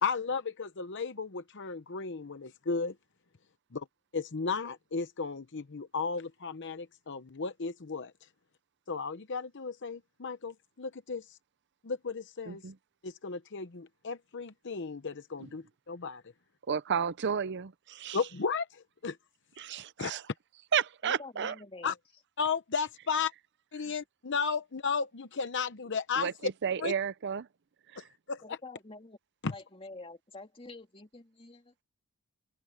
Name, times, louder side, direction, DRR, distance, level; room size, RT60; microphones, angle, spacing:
voice 1, 0.0-2.9 3.7-3.8 4.1-8.1 8.9-11.4 11.8-12.6 13.0-16.2 18.1-19.2 20.0-20.1 21.8-21.9 22.4-23.3 23.7-26.5 26.8-26.9 28.0-28.6 29.4-29.5, left 5 dB, 55° left, 0.8 m, -34 dB
voice 2, 12.5-12.8 15.4-15.5 16.7-18.4 19.6-20.3 20.7-21.6 23.8-23.9 26.1-27.5 27.9-28.1, right 7 dB, 50° right, 0.5 m, -32 dB
voice 3, 21.0-21.9 28.4-29.2 29.5-31.8, left 2 dB, 25° left, 2.7 m, -47 dB
open air
head